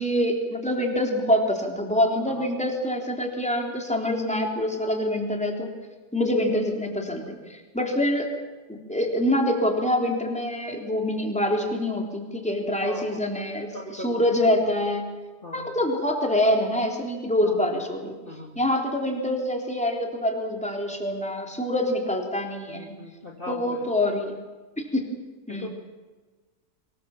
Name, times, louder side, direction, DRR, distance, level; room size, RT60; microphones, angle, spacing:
voice 1, 0.0-5.8 6.1-8.3 8.7-15.0 15.5-18.2 18.5-23.0 23.5-24.3 24.8-25.1 25.5-25.7, left 1 dB, 5° left, 1 dB, 3.6 m, -25 dB
voice 2, 12.8-13.2 13.7-14.2 15.4-15.7 17.4-17.7 18.2-18.6 22.7-23.9 25.5-25.7, left 2 dB, 30° left, -1 dB, 2.5 m, -39 dB
24.0 x 21.0 x 7.3 m, 1.3 s
omnidirectional pair, 1.8 m